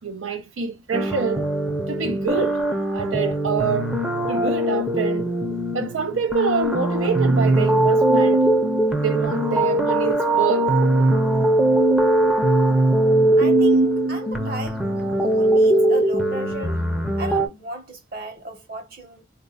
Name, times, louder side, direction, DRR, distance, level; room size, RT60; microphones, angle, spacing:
voice 1, 0.0-1.5 1.9-2.6 2.9-3.9 4.3-5.3 5.7-8.5 9.0-10.7, right 5 dB, 85° right, 0.5 m, -26 dB
sound 1, 0.9-17.5, right 1 dB, 5° right, 0.6 m, -20 dB
voice 2, 13.4-14.8 15.2-16.8 17.2-19.2, right 1 dB, 50° right, 1.2 m, -35 dB
3.9 x 2.7 x 2.3 m
head